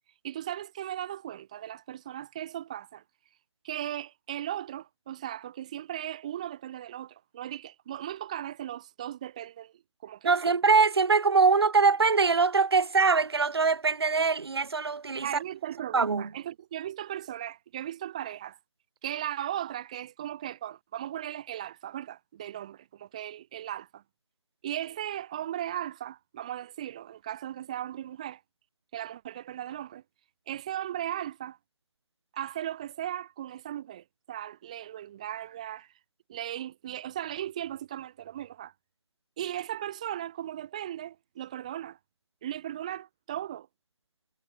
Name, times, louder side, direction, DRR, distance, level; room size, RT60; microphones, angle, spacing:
voice 1, 0.2-3.0 3.6-9.7 10.0-10.5 15.2-18.6 19.0-24.0 24.6-28.4 28.9-30.0 30.5-31.6 32.3-35.9 36.3-38.7 39.4-42.0 42.4-43.7, right 11 dB, 15° right, 1.4 m, -37 dB
voice 2, 10.2-15.3 15.9-16.3, right 4 dB, 55° right, 0.8 m, -23 dB
figure-of-eight pair, 175°, 16 cm